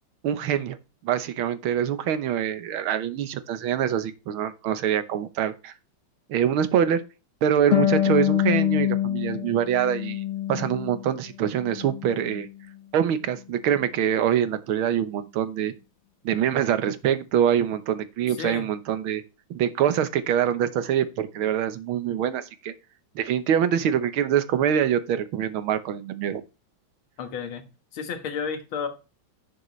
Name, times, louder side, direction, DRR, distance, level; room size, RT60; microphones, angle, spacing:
voice 1, 0.2-0.8 1.0-5.7 6.3-7.0 7.4-10.2 10.5-12.5 12.9-15.7 16.3-19.2 19.5-22.7 23.2-26.4, right 9 dB, 85° right, 1.8 m, -24 dB
Harp, 7.7-11.1 11.4-12.5, left 12 dB, 50° left, 1.0 m, -26 dB
voice 2, 27.2-27.6 27.9-28.9, left 6 dB, 80° left, 2.2 m, -31 dB
11.0 x 6.6 x 3.1 m
omnidirectional pair, 2.2 m